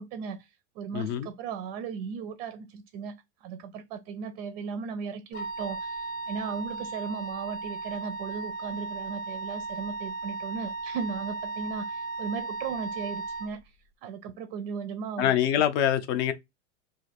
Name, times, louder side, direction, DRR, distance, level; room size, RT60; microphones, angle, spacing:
voice 1, 0.0-13.8 14.0-15.3, right 6 dB, 40° right, 0.4 m, -37 dB
voice 2, 0.9-1.3 15.2-16.3, left 10 dB, 45° left, 0.6 m, -25 dB
Wind instrument woodwind instrument, 5.3-13.5, right 3 dB, 70° left, 1.0 m, -36 dB
2.5 x 2.4 x 4.0 m
supercardioid pair, 145°, 35 cm